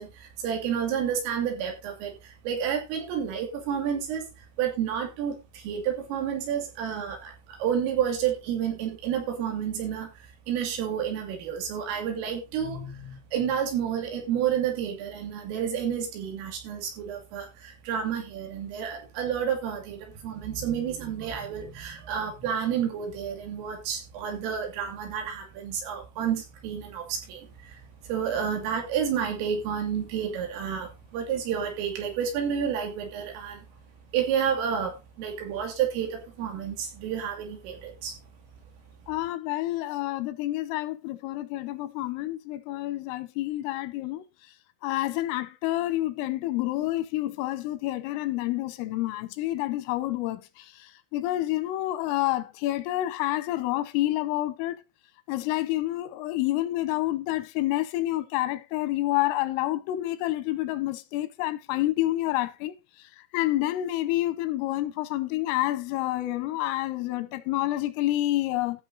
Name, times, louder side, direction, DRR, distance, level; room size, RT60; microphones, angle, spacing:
voice 1, 0.0-33.7 34.1-38.2, right 8 dB, 90° right, 5.3 m, -30 dB
voice 2, 39.1-44.2 44.8-54.8 55.3-62.7 63.3-68.8, left 15 dB, 90° left, 3.6 m, -28 dB
14.5 x 6.5 x 4.0 m
omnidirectional pair, 5.7 m